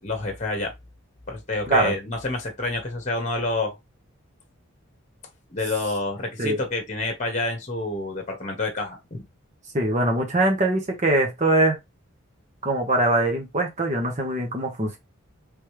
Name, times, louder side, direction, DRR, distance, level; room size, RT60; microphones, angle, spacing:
voice 1, 0.0-0.7 1.3-3.8 5.5-9.2, left 2 dB, 35° left, 1.2 m, -28 dB
voice 2, 9.7-11.8 12.6-15.0, right 2 dB, 35° right, 1.1 m, -22 dB
3.6 x 3.1 x 3.1 m
head